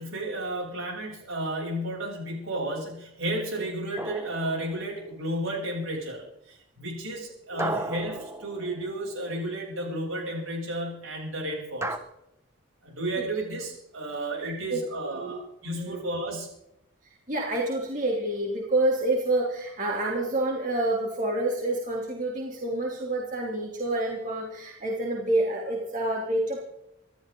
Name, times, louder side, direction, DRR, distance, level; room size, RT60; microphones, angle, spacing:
voice 1, 0.0-12.0 12.8-16.5, right 1 dB, 75° right, -1 dB, 8.0 m, -33 dB
sound 1, 4.0-5.2 7.6-9.3 11.8-12.0, right 1 dB, 15° right, 1.1 m, -35 dB
voice 2, 7.5-7.8 14.4-15.3 15.7-16.0 17.3-26.6, right 2 dB, 40° right, -2 dB, 3.1 m, -28 dB
27.0 x 13.0 x 3.9 m, 0.83 s
head